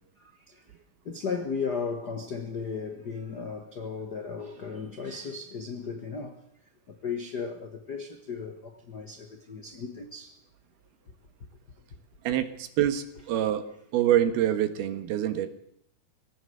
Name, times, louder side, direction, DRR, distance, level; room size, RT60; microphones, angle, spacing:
voice 1, 0.2-0.6 1.0-6.4 6.9-10.4, left 5 dB, 75° left, 0.9 m, -35 dB
voice 2, 12.2-13.7 13.9-15.5, right 11 dB, 80° right, 3.3 m, -26 dB
21.5 x 17.0 x 7.9 m
omnidirectional pair, 4.4 m